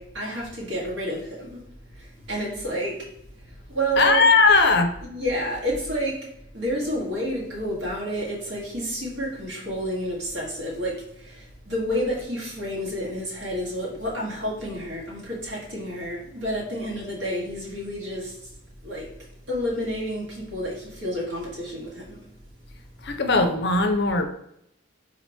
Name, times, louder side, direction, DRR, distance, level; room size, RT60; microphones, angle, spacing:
voice 1, 0.0-1.6 2.0-3.1 3.7-4.3 5.0-18.5 18.8-19.1 19.5-22.2, equal, 60° right, 1.7 m, -30 dB
voice 2, 4.0-4.9 23.0-24.3, left 3 dB, 55° left, 0.6 m, -18 dB
4.0 x 2.9 x 4.3 m
head